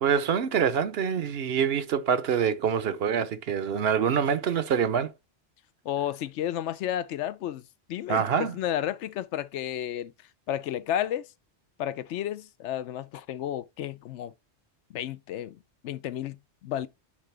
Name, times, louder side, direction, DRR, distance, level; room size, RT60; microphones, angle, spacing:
voice 1, 0.0-5.1 8.1-8.5, right 7 dB, 65° right, 0.9 m, -25 dB
voice 2, 5.8-7.6 7.9-10.1 10.5-11.3 11.8-14.3 14.9-16.9, left 11 dB, 80° left, 0.9 m, -32 dB
9.9 x 3.8 x 3.3 m
omnidirectional pair, 1.2 m